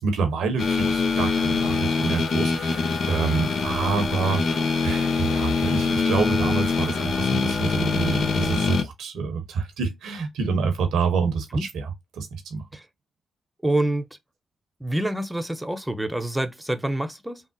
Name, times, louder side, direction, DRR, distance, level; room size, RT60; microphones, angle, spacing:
voice 1, 0.0-12.6, right 5 dB, 80° right, 0.9 m, -27 dB
sound 1, 0.6-8.8, left 4 dB, 65° left, 0.7 m, -24 dB
voice 2, 13.6-14.0 14.8-17.4, right 1 dB, 10° right, 0.6 m, -26 dB
3.5 x 2.0 x 2.6 m
hypercardioid pair, 40°, 0 cm